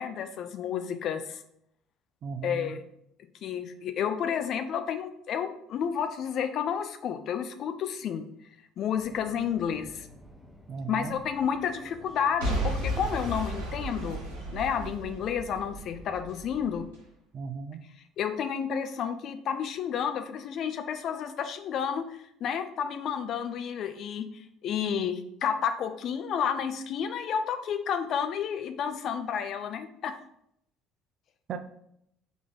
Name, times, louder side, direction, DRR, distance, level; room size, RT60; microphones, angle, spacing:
voice 1, 0.0-1.4 2.4-2.9 3.4-8.2 8.8-10.1 10.9-14.2 14.5-16.8 18.2-30.2, left 7 dB, 50° left, 9 dB, 0.4 m, -31 dB
voice 2, 2.2-2.7 10.7-11.2 17.3-17.8 31.5-31.6, right 5 dB, 50° right, 8 dB, 0.5 m, -36 dB
Subway metro underground, 8.9-16.9, equal, 15° left, 0.9 m, -52 dB
Boom / Shatter / Crushing, 12.4-16.4 16.9-17.0, right 1 dB, 75° right, 1.3 m, -33 dB
3.7 x 3.0 x 3.9 m, 0.72 s
figure-of-eight pair, 55°, 0 cm